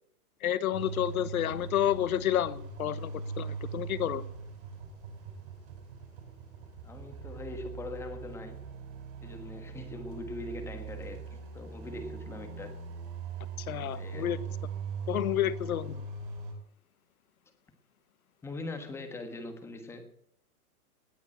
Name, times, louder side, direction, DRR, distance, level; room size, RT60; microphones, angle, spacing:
voice 1, 0.4-4.2 13.6-14.4 15.1-16.0, left 11 dB, 65° left, 15 dB, 1.2 m, -30 dB
sound 1, 0.7-16.5, right 5 dB, 35° right, 5.2 m, -41 dB
voice 2, 6.8-8.7 9.2-12.8 13.9-14.4 18.4-20.1, left 2 dB, 5° left, 6 dB, 1.4 m, -42 dB
19.0 x 7.2 x 8.8 m, 0.71 s
hypercardioid pair, 160°, 45 cm